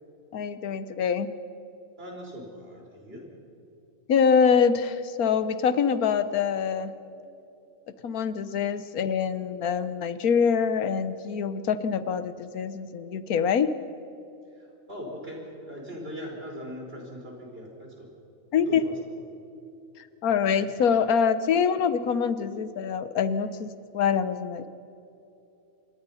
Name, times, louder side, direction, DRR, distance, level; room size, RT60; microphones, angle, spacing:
voice 1, 0.3-1.3 4.1-6.9 8.0-13.7 18.5-18.8 20.2-24.7, left 6 dB, 85° left, 13 dB, 1.4 m, -25 dB
voice 2, 2.0-3.2 14.5-18.1 18.5-18.9, equal, 40° right, 0 dB, 5.4 m, -40 dB
27.0 x 22.5 x 5.6 m, 2.8 s
omnidirectional pair, 1.5 m